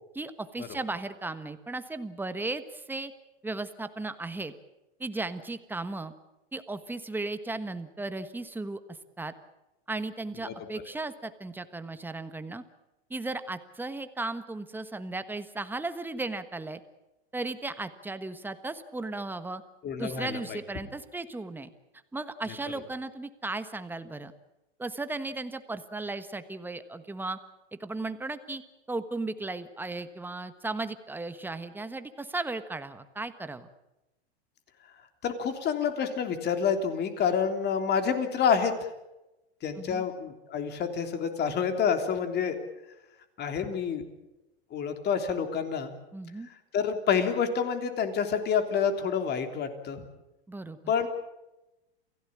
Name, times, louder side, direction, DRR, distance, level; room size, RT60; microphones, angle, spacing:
voice 1, 0.1-3.1 3.4-4.5 5.0-6.1 6.5-8.8 9.2-9.3 9.9-12.6 13.1-16.8 17.3-19.6 20.0-21.7 22.1-24.3 24.8-27.4 27.7-28.6 28.9-33.7 39.8-40.0 46.1-46.5 50.5-50.9, right 2 dB, 5° right, 11 dB, 1.5 m, -36 dB
voice 2, 19.8-20.6 35.2-38.7 39.6-42.6 43.4-44.0 44.7-45.9 46.7-50.0 50.9-51.1, left 7 dB, 30° left, 7 dB, 3.4 m, -28 dB
28.5 x 16.5 x 8.8 m, 0.98 s
hypercardioid pair, 120°, 33 cm